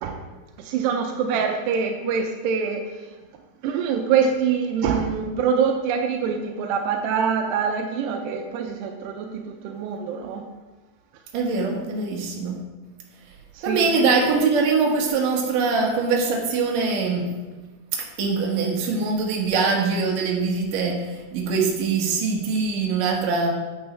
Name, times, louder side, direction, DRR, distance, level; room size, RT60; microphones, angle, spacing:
voice 1, 0.7-2.8 3.6-10.4 13.7-13.9, right 6 dB, 85° right, 4 dB, 2.8 m, -24 dB
voice 2, 11.3-12.6 13.6-17.3 17.9-21.1 21.3-23.5, right 4 dB, 60° right, -1 dB, 2.7 m, -23 dB
8.9 x 8.7 x 3.3 m, 1.2 s
omnidirectional pair, 4.8 m